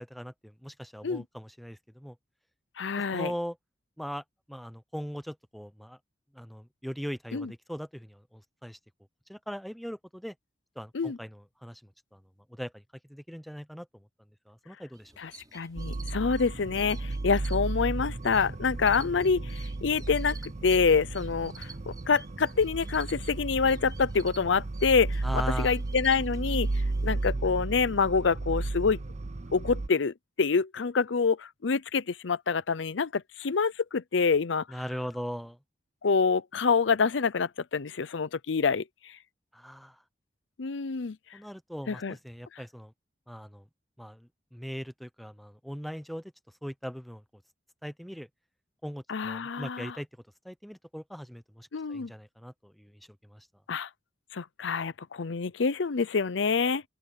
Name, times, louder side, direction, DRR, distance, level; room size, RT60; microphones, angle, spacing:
voice 1, 0.0-2.1 3.1-3.6 4.0-6.0 6.3-8.8 9.3-10.3 10.8-11.8 12.1-12.2 12.5-12.8 13.1-14.1 14.5-15.1 25.2-25.8 34.7-35.6 39.5-40.0 41.3-42.9 43.3-43.6 44.0-46.3 46.6-47.2 47.8-48.3 48.8-50.1 50.4-53.5, equal, ahead, 0.9 m, -40 dB
voice 2, 2.8-3.3 7.3-7.5 10.9-11.2 15.2-26.7 27.0-29.0 29.5-34.6 36.0-39.1 40.6-41.2 41.9-42.1 49.1-50.0 51.7-52.1 53.7-53.9 54.3-56.8, left 5 dB, 90° left, 0.6 m, -27 dB
sound 1, 14.9-27.3, right 5 dB, 20° right, 5.9 m, -52 dB
sound 2, 15.8-29.9, right 2 dB, 40° right, 0.6 m, -34 dB
open air
head